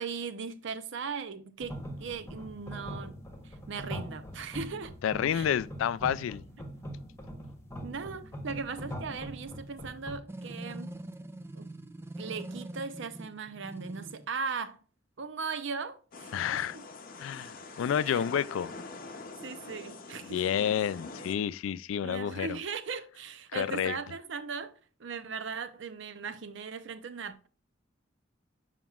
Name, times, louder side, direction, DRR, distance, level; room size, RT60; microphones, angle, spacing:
voice 1, 0.0-3.2 3.4-5.0 5.3-5.5 7.8-11.0 11.5-11.7 12.2-14.8 15.2-16.3 16.7-16.8 18.1-18.2 19.4-20.4 22.0-27.5, right 5 dB, 65° right, 0.6 m, -38 dB
sound 1, 1.6-10.2, equal, 15° left, 1.1 m, -42 dB
voice 2, 5.0-6.4 16.3-16.8 17.2-18.7 20.2-22.6 23.5-24.0, left 9 dB, 80° left, 0.3 m, -30 dB
sound 2, 10.3-14.3, right 1 dB, 15° right, 0.3 m, -43 dB
sound 3, 16.1-21.4, left 3 dB, 45° left, 0.7 m, -45 dB
7.2 x 5.8 x 2.4 m
head